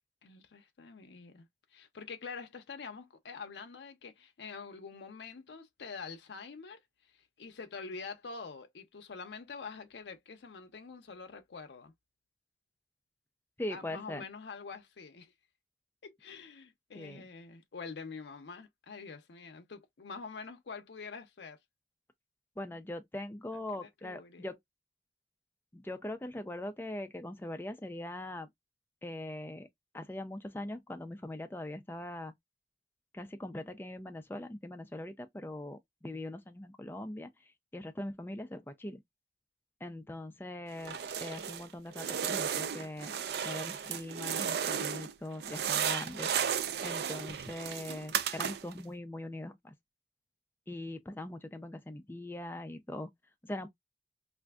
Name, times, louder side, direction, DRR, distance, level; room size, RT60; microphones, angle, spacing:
voice 1, 0.2-11.9 13.7-15.3 16.0-21.6 23.5-24.5 39.8-39.9, left 5 dB, 80° left, 0.5 m, -46 dB
voice 2, 13.6-14.2 16.9-17.3 22.6-24.6 25.7-28.5 29.0-29.7 29.9-32.3 33.1-37.3 37.7-39.0 39.8-43.1 43.4-49.7 50.7-53.1 53.4-53.7, left 1 dB, 10° left, 0.3 m, -41 dB
sound 1, 40.8-41.7 41.9-45.1 45.4-48.8, right 8 dB, 65° right, 0.3 m, -34 dB
3.3 x 2.5 x 2.3 m
head